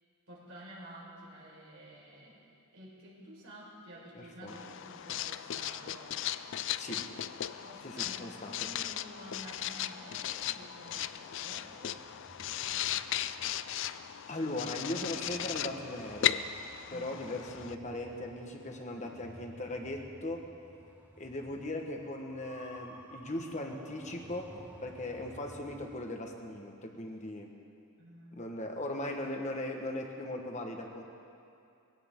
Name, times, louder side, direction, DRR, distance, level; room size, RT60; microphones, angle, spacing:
voice 1, 0.3-2.4 2.7-6.2 7.6-12.1 16.9-17.2 28.0-28.4, right 1 dB, 70° right, -6 dB, 5.0 m, -51 dB
voice 2, 4.1-4.6 6.8-7.0 7.8-8.5 14.3-16.4 16.9-20.5 21.2-27.5 28.4-31.0, left 1 dB, 35° left, 2 dB, 1.5 m, -39 dB
Writing, 4.5-17.7, left 11 dB, 60° left, 0.4 m, -37 dB
sound 1, 7.4-26.1, right 1 dB, 10° right, 0.9 m, -55 dB
21.0 x 17.0 x 3.8 m, 2.6 s
head